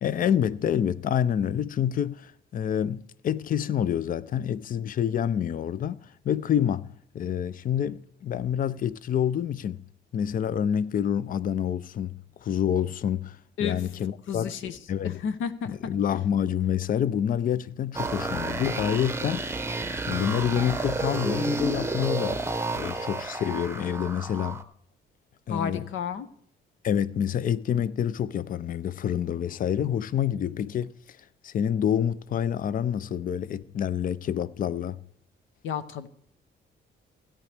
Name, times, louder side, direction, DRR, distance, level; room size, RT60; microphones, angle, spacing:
voice 1, 0.0-9.8 10.1-12.1 12.4-14.5 14.9-15.2 15.7-19.7 20.1-22.4 22.7-24.6 25.5-25.8 26.8-30.9 31.4-35.0, left 9 dB, 45° left, 0.4 m, -27 dB
voice 2, 14.3-14.8 15.0-15.9 25.5-26.3 35.6-36.1, left 7 dB, 80° left, 0.8 m, -31 dB
sound 1, 17.9-24.6, right 3 dB, 10° right, 0.8 m, -31 dB
16.5 x 9.7 x 3.4 m
cardioid pair, 90°, 20 cm